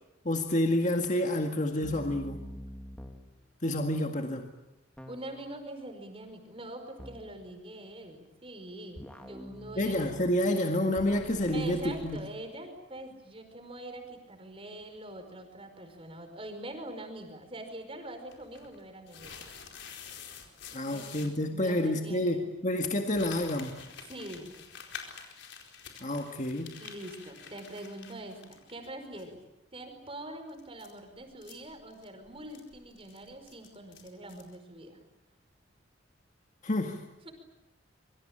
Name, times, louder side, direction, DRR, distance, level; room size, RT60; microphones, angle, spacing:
voice 1, 0.3-2.4 3.6-4.5 9.8-12.2 20.7-23.7 26.0-26.8 36.6-37.0, left 1 dB, 40° left, 4 dB, 1.9 m, -29 dB
sound 1, 1.8-3.3 5.0-5.5 7.0-7.3 9.0-10.5 11.0-12.2, equal, 5° left, 2.6 m, -46 dB
voice 2, 5.1-9.9 11.5-19.5 20.9-21.1 21.5-22.5 24.0-24.5 26.8-29.4 29.7-35.0 37.2-37.3, right 1 dB, 30° right, 6 dB, 5.0 m, -44 dB
sound 2, 18.3-21.3 23.1-28.9 29.2-29.3 30.5-34.6, left 6 dB, 65° left, 4.5 m, -48 dB
27.0 x 24.0 x 8.9 m, 0.93 s
head